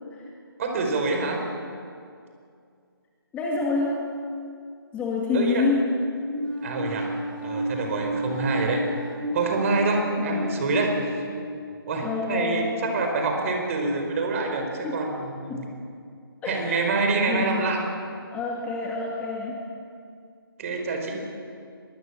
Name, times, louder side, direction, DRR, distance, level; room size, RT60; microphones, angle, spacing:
voice 1, 0.6-1.4 5.3-5.6 6.6-7.1 7.4-8.8 9.3-11.2 11.9-15.6 16.5-17.8 20.6-21.2, right 3 dB, 35° right, 3 dB, 5.1 m, -26 dB
voice 2, 3.3-4.1 4.9-6.0 10.2-10.6 12.0-12.8 14.8-15.2 15.5-15.7 16.4-17.7 18.3-19.6, left 3 dB, 10° left, -2 dB, 2.3 m, -28 dB
sound 1, 6.3-12.7, right 1 dB, 65° right, 6.7 m, -33 dB
22.5 x 22.0 x 7.5 m, 2.3 s
figure-of-eight pair, 155°, 13 cm